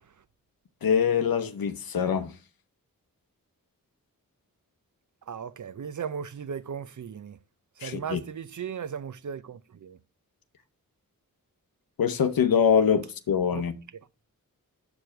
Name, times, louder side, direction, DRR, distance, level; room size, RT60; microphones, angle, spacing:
voice 1, 0.8-2.3 7.8-8.2 12.0-13.7, left 7 dB, 80° left, 0.8 m, -24 dB
voice 2, 5.3-7.4 7.8-10.0 13.5-13.7, right 7 dB, 55° right, 0.6 m, -36 dB
6.2 x 5.0 x 5.7 m
cardioid pair, 50°, 35 cm